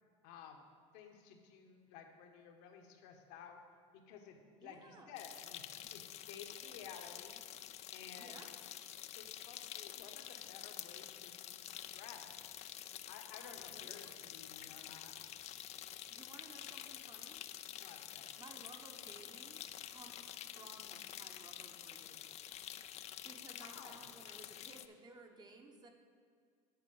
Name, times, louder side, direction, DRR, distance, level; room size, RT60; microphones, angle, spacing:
voice 1, 0.2-0.6 0.9-3.6 3.9-7.4 7.9-8.4 8.9-12.3 13.1-15.1 17.8-18.3 23.5-24.1, left 7 dB, 70° left, 4 dB, 1.2 m, -55 dB
voice 2, 4.6-5.2 8.1-8.5 13.4-14.3 16.1-17.4 18.4-22.4 23.2-25.9, right 3 dB, 25° right, 3 dB, 1.0 m, -58 dB
sound 1, 5.2-24.9, left 11 dB, 40° left, 0.4 m, -49 dB
8.2 x 4.5 x 7.0 m, 2.2 s
supercardioid pair, 95°, 17 cm